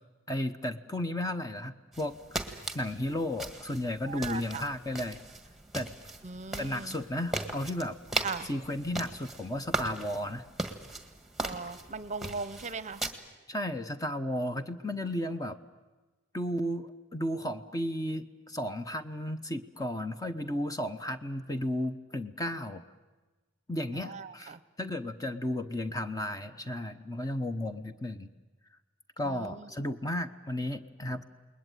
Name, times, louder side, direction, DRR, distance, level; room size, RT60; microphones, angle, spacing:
voice 1, 0.3-2.2 2.7-5.2 5.7-5.9 6.6-8.0 8.4-10.4 13.5-15.6 16.3-22.8 23.7-28.3 29.2-31.3, left 1 dB, 20° left, 8 dB, 1.0 m, -34 dB
sound 1, 1.9-13.1, right 2 dB, ahead, 1.7 m, -38 dB
voice 2, 4.1-4.6 6.2-6.9 8.2-8.5 11.4-13.0 23.9-24.6 29.2-29.7, right 4 dB, 35° right, 14 dB, 0.8 m, -39 dB
29.5 x 20.5 x 9.3 m, 1.2 s
head